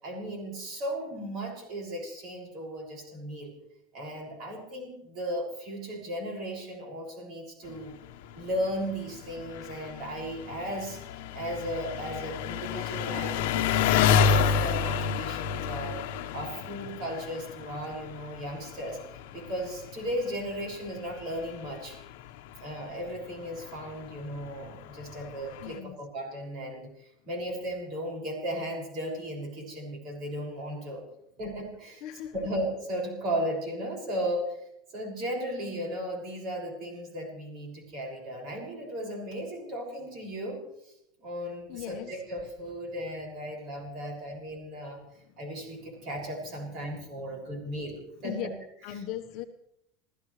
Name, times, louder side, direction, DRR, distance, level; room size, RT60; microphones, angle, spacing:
voice 1, 0.0-3.5 3.9-7.9 8.3-11.0 11.3-16.0 16.3-19.0 19.3-22.0 22.6-31.0 31.4-32.0 32.4-34.6 34.9-40.9 41.2-45.0 45.4-48.5, equal, 35° right, 0 dB, 6.4 m, -36 dB
Engine, 7.7-25.8, left 7 dB, 65° left, 1.1 m, -31 dB
voice 2, 25.6-26.1 32.0-32.5 41.7-42.2 45.1-46.1 46.7-47.9 48.2-48.5 48.8-49.4, left 11 dB, 40° left, 5 dB, 1.2 m, -41 dB
27.5 x 15.0 x 3.3 m, 0.79 s
supercardioid pair, 180°, 0 cm